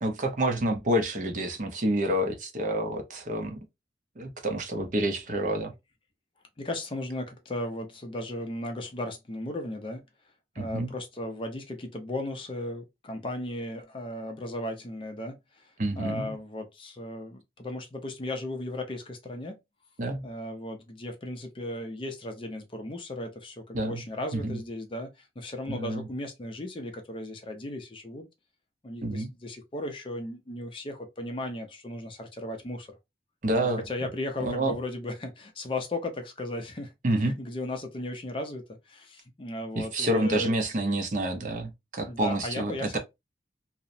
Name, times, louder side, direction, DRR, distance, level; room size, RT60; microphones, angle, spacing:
voice 1, 0.0-3.6 4.2-5.7 10.6-10.9 15.8-16.3 20.0-20.3 23.7-24.0 24.3-24.6 25.7-26.0 29.0-29.3 33.4-33.8 34.4-34.8 37.0-37.4 39.8-43.0, right 1 dB, 45° right, 0.6 m, -28 dB
voice 2, 6.6-10.0 10.6-19.6 20.2-28.3 28.8-33.0 33.9-36.9 37.2-40.5 42.1-43.0, left 1 dB, 30° left, 0.4 m, -36 dB
2.8 x 2.0 x 2.5 m
head